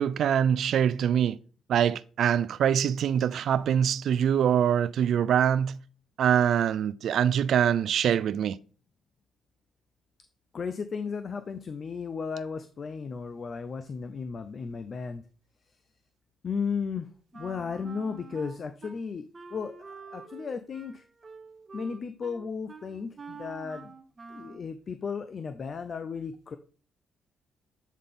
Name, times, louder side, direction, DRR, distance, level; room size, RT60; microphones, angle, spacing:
voice 1, 0.0-1.4 1.7-5.8 6.2-8.6, right 9 dB, 65° right, 0.3 m, -24 dB
voice 2, 10.5-15.2 16.4-17.1 17.3-21.0 21.7-23.9 24.3-26.6, left 5 dB, 45° left, 0.5 m, -35 dB
Wind instrument woodwind instrument, 17.3-19.0 19.3-24.7, right 4 dB, 30° right, 0.7 m, -47 dB
8.2 x 3.9 x 3.6 m
cardioid pair, 90°, 0 cm